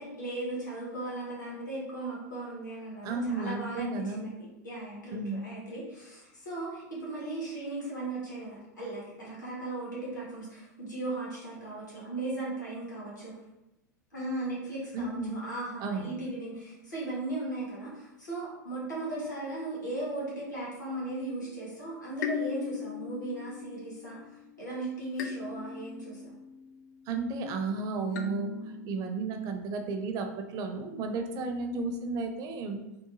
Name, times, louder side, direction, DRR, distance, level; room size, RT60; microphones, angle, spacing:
voice 1, 0.0-4.3 4.6-13.3 14.1-26.3, right 2 dB, 85° left, -6 dB, 1.4 m, -37 dB
voice 2, 3.0-4.3 5.1-5.5 14.9-15.4 15.8-16.1 27.1-28.5 28.8-32.8, right 3 dB, 40° right, 5 dB, 0.5 m, -33 dB
basi kalimba, 21.4-21.8 22.2-24.6 25.2-27.2 28.1-29.7, left 7 dB, 65° left, 0.4 m, -40 dB
3.7 x 2.2 x 3.0 m, 0.94 s
hypercardioid pair, 95°, 10 cm